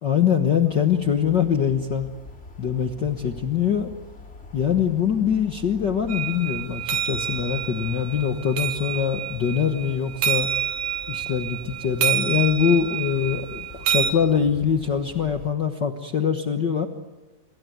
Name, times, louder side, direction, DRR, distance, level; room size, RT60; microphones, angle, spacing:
voice 1, 0.0-2.1 2.6-3.9 4.5-10.5 11.1-16.9, left 8 dB, 60° left, 6 dB, 1.1 m, -23 dB
sound 1, 0.6-15.5, left 2 dB, 20° left, 2.6 m, -45 dB
sound 2, 6.1-14.1, right 9 dB, 60° right, 2.5 m, -28 dB
27.5 x 22.5 x 9.3 m, 1.2 s
omnidirectional pair, 3.9 m